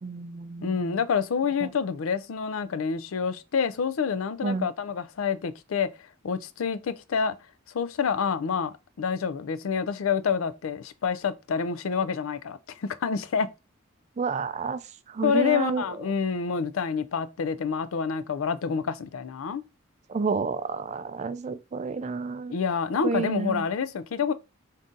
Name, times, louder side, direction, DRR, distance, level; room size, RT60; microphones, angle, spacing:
voice 1, 0.0-0.9 1.6-1.7 4.4-4.7 14.2-14.8 15.1-15.8 20.1-22.5 23.0-23.6, right 4 dB, 35° right, 0.3 m, -30 dB
voice 2, 0.6-5.9 6.2-7.4 7.7-13.5 15.2-19.6 22.5-24.3, left 6 dB, 75° left, 0.4 m, -28 dB
3.7 x 2.7 x 3.7 m
head